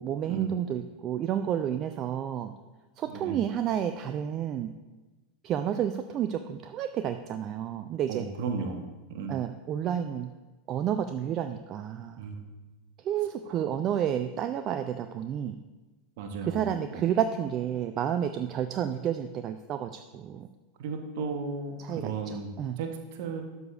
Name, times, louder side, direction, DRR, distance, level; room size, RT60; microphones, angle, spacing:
voice 1, 0.0-2.5 3.0-4.7 5.4-8.2 9.3-10.3 10.7-12.2 13.0-15.6 16.4-20.5 21.8-22.8, right 9 dB, 35° right, 9 dB, 0.3 m, -30 dB
voice 2, 3.1-3.4 8.1-8.8 9.1-9.3 12.2-12.4 13.5-13.6 16.2-17.2 20.8-22.5 22.8-23.4, right 5 dB, 55° right, 5 dB, 1.0 m, -35 dB
12.0 x 6.7 x 2.4 m, 1.2 s
figure-of-eight pair, 85°, 0 cm